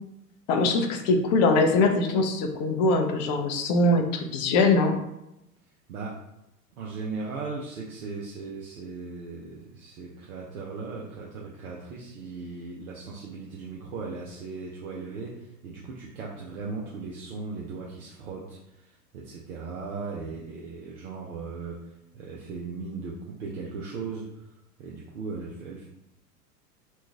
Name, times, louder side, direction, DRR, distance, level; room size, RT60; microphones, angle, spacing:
voice 1, 0.5-4.9, left 2 dB, 30° left, 4 dB, 0.4 m, -22 dB
voice 2, 5.9-6.2 6.8-21.8 22.1-24.4 24.8-25.9, right 4 dB, 65° right, -4 dB, 0.8 m, -37 dB
3.0 x 2.4 x 3.5 m, 0.87 s
figure-of-eight pair, 95°, 46 cm